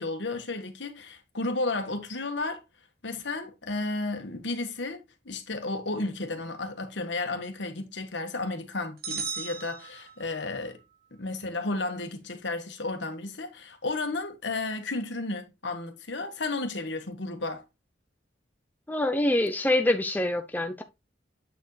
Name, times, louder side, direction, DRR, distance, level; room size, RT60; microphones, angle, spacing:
voice 1, 0.0-2.6 3.0-10.8 11.1-17.6, left 2 dB, 80° left, 1.5 m, -33 dB
sound 1, 9.0-10.6, right 6 dB, 55° right, 1.1 m, -36 dB
voice 2, 18.9-20.8, left 1 dB, 10° left, 0.6 m, -25 dB
8.2 x 4.7 x 3.2 m
head